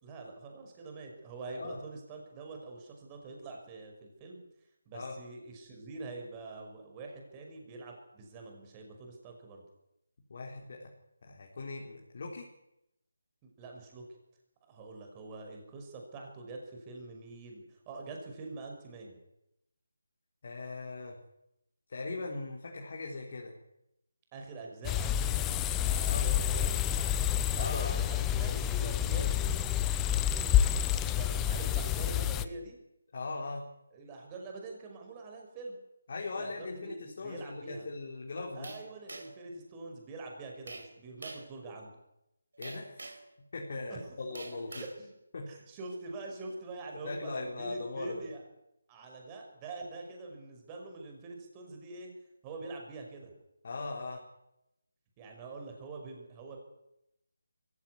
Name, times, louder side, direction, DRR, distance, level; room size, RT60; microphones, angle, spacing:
voice 1, 0.0-4.4 4.9-9.6 13.6-14.0 14.6-19.2 24.3-29.5 30.3-32.8 33.9-35.8 36.3-37.9 38.4-41.9 43.9-44.0 44.3-45.2 45.5-48.4 48.9-52.1 52.4-53.3 55.2-56.6, right 3 dB, 20° right, 2 dB, 5.6 m, -45 dB
voice 2, 1.5-1.8 4.9-5.2 10.3-10.9 11.2-12.5 20.4-21.2 21.9-23.5 26.1-26.3 27.6-27.9 33.1-33.6 36.1-38.7 42.6-43.0 43.5-44.8 45.3-45.5 47.0-48.3 53.6-54.2, left 3 dB, 50° left, -1 dB, 4.3 m, -39 dB
sound 1, 24.8-32.4, left 10 dB, 10° left, 0.8 m, -29 dB
sound 2, 38.6-39.5 40.7-40.9 41.2-41.5 42.6-43.3 44.3-45.0, right 3 dB, 70° right, 4.8 m, -45 dB
23.5 x 16.0 x 9.7 m, 0.86 s
figure-of-eight pair, 160°, 0 cm